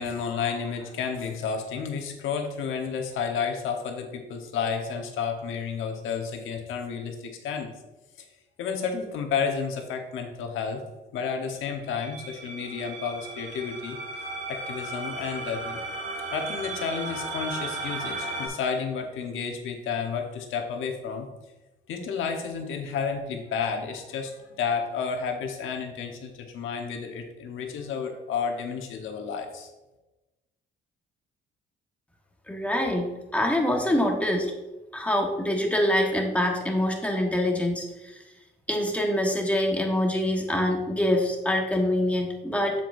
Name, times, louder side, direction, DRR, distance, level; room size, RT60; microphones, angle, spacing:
voice 1, 0.0-7.7 8.6-10.8 11.1-14.0 14.5-15.8 16.3-21.3 21.9-29.7, left 6 dB, 85° left, 4 dB, 1.1 m, -31 dB
sound 1, 11.8-18.5, right 2 dB, 75° right, 2.2 m, -35 dB
voice 2, 32.5-34.5 34.9-38.1 38.7-42.8, left 1 dB, 5° left, 1 dB, 1.4 m, -25 dB
7.6 x 7.1 x 2.7 m, 1.1 s
cardioid pair, 90°, 20 cm